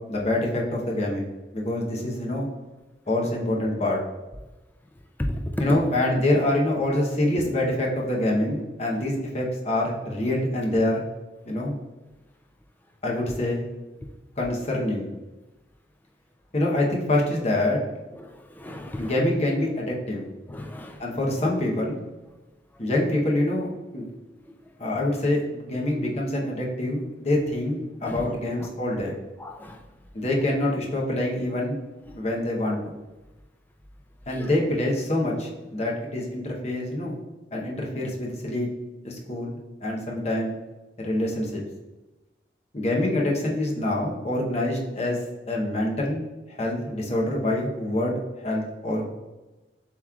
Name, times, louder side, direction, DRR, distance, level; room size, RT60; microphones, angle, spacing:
voice 1, 0.1-1.3 1.5-2.5 3.1-4.0 5.6-11.0 11.4-11.7 13.0-13.6 14.4-15.1 16.5-17.8 19.0-20.3 21.0-22.0 22.8-23.7 23.9-24.1 24.8-29.1 30.1-31.8 32.2-32.9 34.3-37.2 37.5-38.7 39.0-40.5 41.0-41.6 42.7-45.2 45.5-46.2 46.5-49.1, left 1 dB, 40° left, -2 dB, 0.8 m, -25 dB
voice 2, 18.2-19.1 20.5-21.0 28.0-28.3 29.4-29.8 32.1-32.2 34.4-34.5, left 1 dB, 10° left, 3 dB, 0.4 m, -35 dB
7.2 x 3.1 x 2.3 m, 1.1 s
head